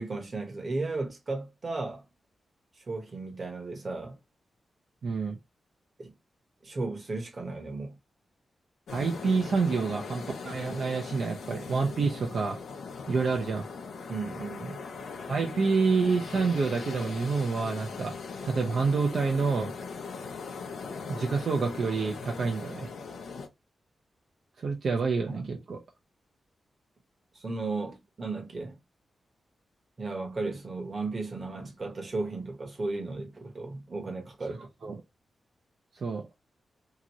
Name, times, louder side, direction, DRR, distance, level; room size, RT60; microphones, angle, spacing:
voice 1, 0.0-2.0 2.8-4.2 6.0-6.1 6.6-8.0 14.1-14.8 25.3-25.5 27.3-28.8 30.0-35.0, right 3 dB, 40° right, 1.1 m, -35 dB
voice 2, 5.0-5.4 8.9-12.6 13.1-13.6 15.3-18.1 18.4-19.7 21.1-22.9 24.6-25.8 34.8-35.0 36.0-36.3, right 4 dB, 65° right, 0.6 m, -28 dB
sound 1, 8.9-23.5, left 5 dB, 85° left, 0.7 m, -40 dB
2.9 x 2.5 x 2.9 m
wide cardioid pair, 105°, 0 cm